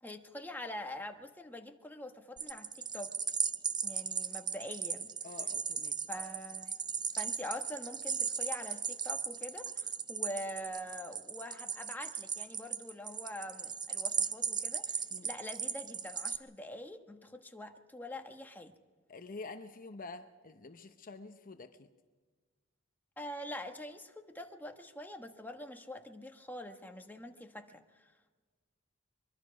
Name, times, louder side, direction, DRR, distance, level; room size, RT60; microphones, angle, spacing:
voice 1, 0.0-3.1 3.8-5.1 6.1-6.7 7.2-18.7 23.2-28.1, left 1 dB, 10° left, 4 dB, 1.2 m, -44 dB
sound 1, 2.4-16.4, right 6 dB, 20° right, 0.7 m, -37 dB
voice 2, 5.2-6.0 15.1-15.3 19.1-21.9, left 3 dB, 40° left, 8 dB, 0.8 m, -47 dB
23.5 x 22.5 x 5.1 m, 1.4 s
head